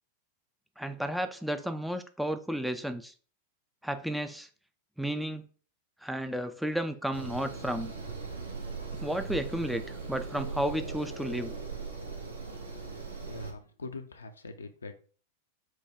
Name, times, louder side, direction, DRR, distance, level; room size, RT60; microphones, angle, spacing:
voice 1, 0.8-3.1 3.8-4.5 5.0-5.4 6.0-7.9 9.0-9.8 10.1-11.5, right 1 dB, ahead, 8 dB, 0.3 m, -32 dB
sound 1, 7.1-13.5, right 4 dB, 80° right, 1.0 m, -39 dB
voice 2, 12.9-15.0, left 3 dB, 75° left, 7 dB, 0.5 m, -43 dB
4.6 x 2.2 x 3.4 m, 0.40 s
figure-of-eight pair, 90°, 0 cm